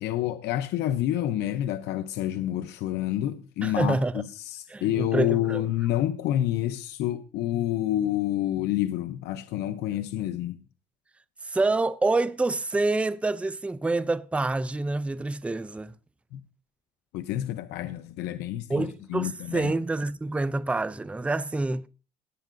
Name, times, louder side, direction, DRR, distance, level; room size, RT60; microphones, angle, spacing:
voice 1, 0.0-10.6 16.3-16.4 17.1-19.7, left 13 dB, 85° left, 0.7 m, -28 dB
voice 2, 3.6-4.1 4.7-5.6 11.5-15.9 18.7-21.8, right 2 dB, 5° right, 0.4 m, -27 dB
18.0 x 9.1 x 2.6 m
cardioid pair, 110°, 17 cm